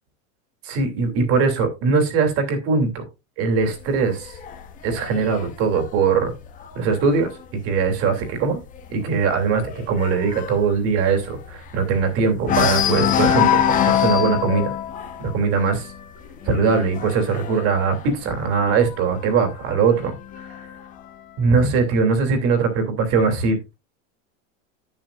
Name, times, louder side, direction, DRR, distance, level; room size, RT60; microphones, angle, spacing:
voice 1, 0.6-3.0 3.4-4.3 4.8-6.3 6.7-7.3 7.6-8.6 8.9-14.7 15.2-15.9 16.5-20.1 20.5-20.6 21.4-23.7, right 5 dB, 35° right, 2.9 m, -21 dB
sound 1, 3.7-7.3 7.7-8.0 8.3-8.4 8.8-12.0 12.4-19.0 19.8-20.8, left 9 dB, 20° left, 1.0 m, -24 dB
11.0 x 9.2 x 2.5 m
supercardioid pair, 165°, 39 cm